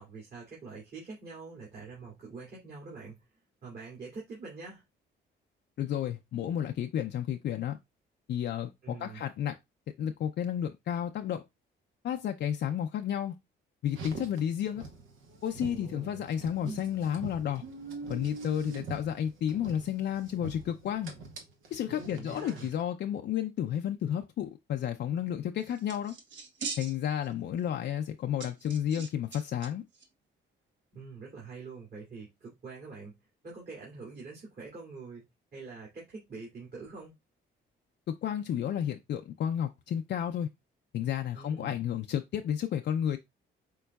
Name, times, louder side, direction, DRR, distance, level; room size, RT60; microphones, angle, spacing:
voice 1, 0.0-3.2 3.6-4.8 8.8-9.2 15.6-16.2 21.9-22.7 30.9-33.1 33.4-35.2 35.5-37.1 41.3-41.8, right 4 dB, 50° right, 2.4 m, -45 dB
voice 2, 5.8-7.8 8.3-9.6 10.0-11.4 12.0-13.3 13.8-14.8 15.4-17.6 18.1-21.1 21.7-26.2 26.8-29.8 38.1-40.5 40.9-43.2, left 9 dB, 60° left, 0.5 m, -32 dB
Car, 13.9-22.8, right 3 dB, 85° right, 1.0 m, -44 dB
sound 1, 25.6-27.3 27.6-27.7 28.4-29.7 29.9-30.0, right 5 dB, 70° right, 1.1 m, -41 dB
5.3 x 3.8 x 2.3 m
cardioid pair, 90°, 20 cm